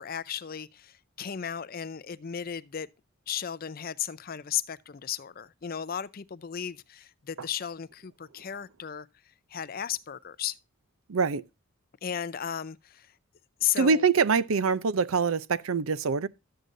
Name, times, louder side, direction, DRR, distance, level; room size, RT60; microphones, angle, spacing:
voice 1, 0.0-2.9 3.3-9.1 9.5-10.6 12.0-13.1 13.6-14.1, left 9 dB, 45° left, 0.5 m, -34 dB
voice 2, 11.1-11.4 13.8-16.3, right 5 dB, 75° right, 0.5 m, -24 dB
12.5 x 7.7 x 2.6 m
head